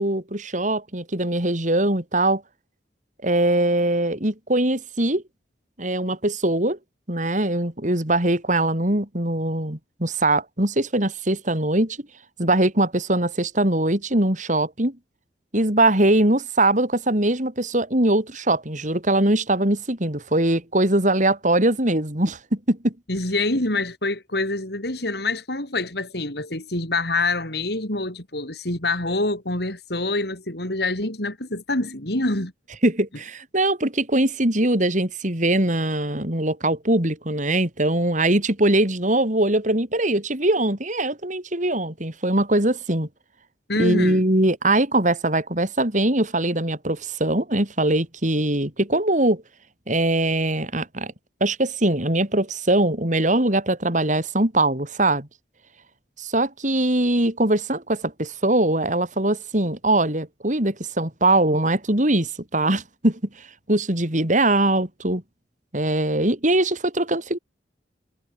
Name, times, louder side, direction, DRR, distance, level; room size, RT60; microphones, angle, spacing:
voice 1, 0.0-2.4 3.2-5.2 5.8-6.8 7.1-12.0 12.4-15.0 15.5-22.9 32.8-43.1 43.8-49.4 49.9-51.1 51.4-55.3 56.2-63.2 63.7-65.2 65.7-67.4, right 1 dB, 45° right, 4.2 m, -22 dB
voice 2, 23.1-32.5 43.7-44.2, left 2 dB, 60° left, 5.4 m, -26 dB
head